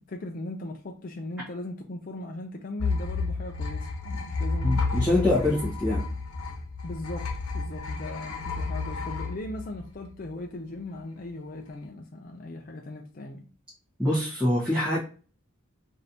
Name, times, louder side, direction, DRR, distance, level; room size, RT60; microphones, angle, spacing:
voice 1, 0.0-5.3 5.6-5.7 6.0-6.2 6.8-13.4, left 2 dB, 40° left, 0.4 m, -38 dB
sound 1, 2.8-10.3, left 3 dB, 90° left, 0.9 m, -31 dB
voice 2, 4.6-6.0 14.0-15.0, left 1 dB, 5° right, 1.1 m, -24 dB
5.1 x 2.6 x 2.8 m
head